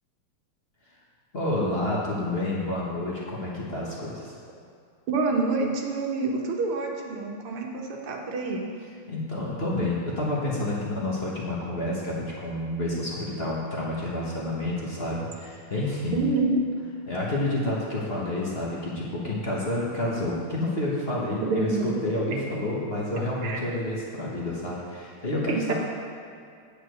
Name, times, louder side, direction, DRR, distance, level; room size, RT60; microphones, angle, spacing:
voice 1, 1.3-4.4 9.1-16.3 17.1-25.7, left 1 dB, 35° left, -5 dB, 1.3 m, -29 dB
voice 2, 5.1-8.6 16.1-16.6 21.4-21.9 23.4-23.6 25.5-25.7, right 3 dB, 85° right, 0 dB, 2.0 m, -27 dB
8.6 x 5.1 x 7.8 m, 2.4 s
omnidirectional pair, 2.3 m